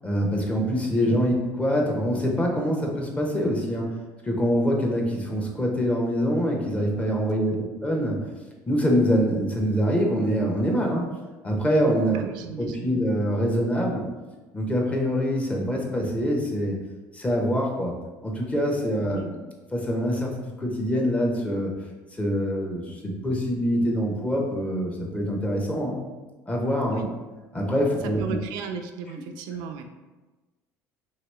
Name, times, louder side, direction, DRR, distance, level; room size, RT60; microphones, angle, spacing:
voice 1, 0.0-3.9 4.2-8.2 8.7-11.0 11.4-12.2 12.6-14.0 14.5-16.7 17.1-17.9 18.2-19.2 19.7-20.3 20.6-21.7 22.2-26.0 26.5-27.0 27.5-28.4, equal, 15° left, -1 dB, 0.8 m, -24 dB
voice 2, 12.1-12.9 19.1-19.4 26.9-27.1 28.0-29.8, right 6 dB, 75° right, 6 dB, 0.3 m, -35 dB
2.9 x 2.8 x 3.2 m, 1.2 s
supercardioid pair, 85°, 7 cm